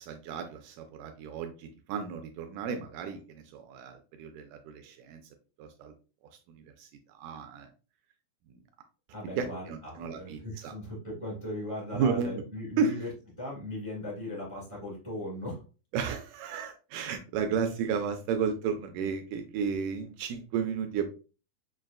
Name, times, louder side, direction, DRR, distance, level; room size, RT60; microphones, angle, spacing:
voice 1, 0.0-5.2 5.6-5.9 6.5-7.7 9.4-10.7 11.9-12.4 12.8-13.0 15.9-21.1, right 6 dB, 85° right, 6 dB, 1.8 m, -33 dB
voice 2, 9.1-13.1 13.4-15.6, left 1 dB, 35° right, -5 dB, 0.4 m, -38 dB
6.4 x 2.4 x 2.2 m, 0.34 s
omnidirectional pair, 4.1 m